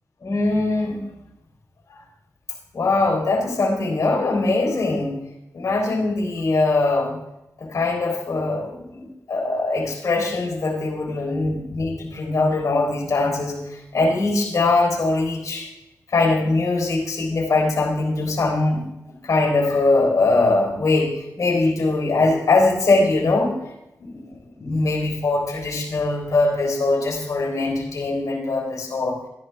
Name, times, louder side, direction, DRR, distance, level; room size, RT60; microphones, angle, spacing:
voice 1, 0.2-1.2 1.9-2.0 2.7-5.2 5.5-7.2 7.6-15.7 16.1-18.8 19.2-23.7 24.0-29.2, left 3 dB, 65° left, 1 dB, 3.7 m, -22 dB
14.0 x 11.5 x 3.4 m, 0.87 s
cardioid pair, 60°, 6 cm